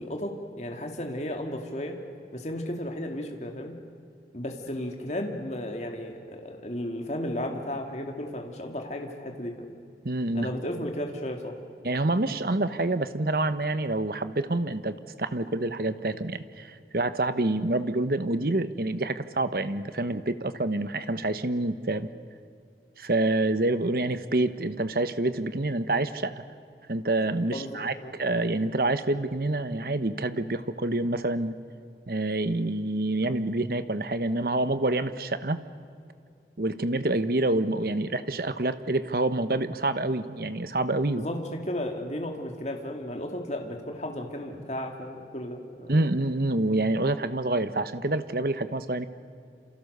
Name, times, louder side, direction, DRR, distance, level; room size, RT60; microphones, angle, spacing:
voice 1, 0.0-2.0 2.3-3.8 4.3-9.7 10.3-11.6 27.5-28.1 41.1-45.9, left 1 dB, 40° left, 2 dB, 2.4 m, -34 dB
voice 2, 10.0-10.5 11.8-22.1 23.0-26.3 26.9-31.5 32.1-35.6 36.6-41.2 45.9-49.1, right 2 dB, 55° right, 11 dB, 1.1 m, -27 dB
28.0 x 28.0 x 6.8 m, 2.3 s
head